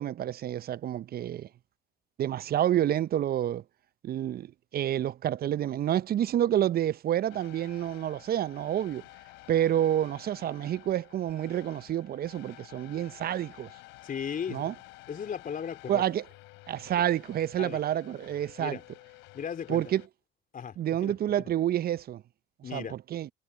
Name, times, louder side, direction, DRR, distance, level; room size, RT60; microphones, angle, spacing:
voice 1, 0.0-1.5 2.2-3.6 4.0-4.5 4.7-9.0 9.5-13.7 14.5-14.7 15.9-16.2 16.7-18.8 19.7-20.0 20.8-22.2 22.7-23.3, right 11 dB, 50° right, 0.9 m, -28 dB
sound 1, 7.3-20.1, left 22 dB, 70° left, 4.8 m, -52 dB
voice 2, 14.0-14.7 15.1-16.0 17.6-17.8 18.6-18.8 19.3-19.8 20.5-21.5 22.6-23.0, left 7 dB, 45° left, 3.4 m, -37 dB
hypercardioid pair, 50°, 20 cm